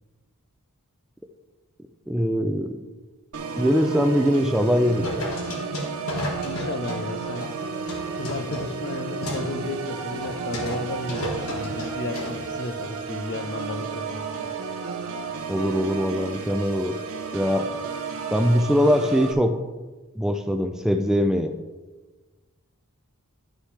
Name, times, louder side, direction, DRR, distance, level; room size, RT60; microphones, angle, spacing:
voice 1, 2.1-2.8 3.6-5.3 15.5-16.9 17.3-17.7 18.3-19.6 20.2-21.5, equal, 5° right, 6 dB, 0.4 m, -22 dB
Organ, 3.3-19.3, right 5 dB, 65° right, 0.7 m, -33 dB
sound 1, 5.0-7.5 7.9-9.5 9.8-9.9 10.2-10.8 11.1-12.4, left 1 dB, 70° left, 1.6 m, -33 dB
voice 2, 6.4-7.5 8.1-14.5, left 2 dB, 50° left, 8 dB, 0.7 m, -33 dB
11.0 x 6.3 x 3.3 m, 1.2 s
head